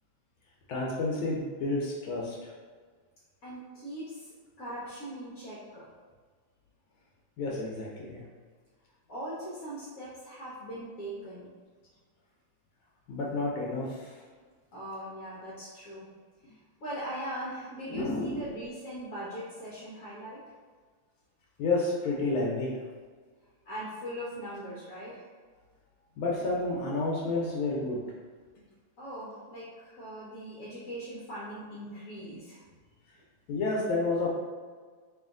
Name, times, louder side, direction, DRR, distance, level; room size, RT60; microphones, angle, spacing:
voice 1, 0.7-2.5 7.4-8.2 13.1-14.2 17.9-18.5 21.6-22.8 26.2-28.0 33.5-34.3, left 2 dB, 80° left, -3 dB, 1.5 m, -30 dB
voice 2, 3.4-4.3 4.6-5.8 9.1-11.5 14.7-16.1 16.4-20.4 23.6-25.3 29.0-32.6, equal, 55° left, -8 dB, 1.0 m, -40 dB
3.2 x 3.0 x 3.6 m, 1.5 s
omnidirectional pair, 2.2 m